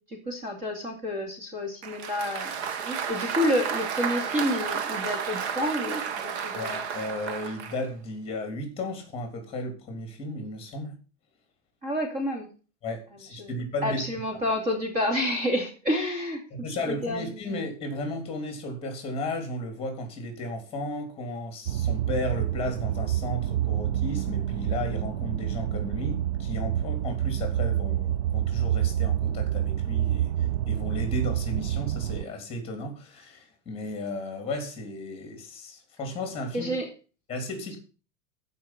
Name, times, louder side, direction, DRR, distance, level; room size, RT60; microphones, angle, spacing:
voice 1, 0.3-2.5 2.8-6.7 11.8-12.5 13.4-13.5 13.8-16.4 16.9-17.3 36.5-36.9, left 1 dB, 25° right, 2.5 m, -29 dB
Applause, 1.8-7.8, right 7 dB, 65° right, 1.5 m, -32 dB
voice 2, 6.5-11.0 12.8-14.0 16.5-36.7 37.3-37.8, left 1 dB, 15° left, 3.2 m, -34 dB
sound 1, 21.7-32.2, right 11 dB, 50° right, 0.5 m, -28 dB
15.0 x 5.7 x 5.9 m
supercardioid pair, 175°, 35 cm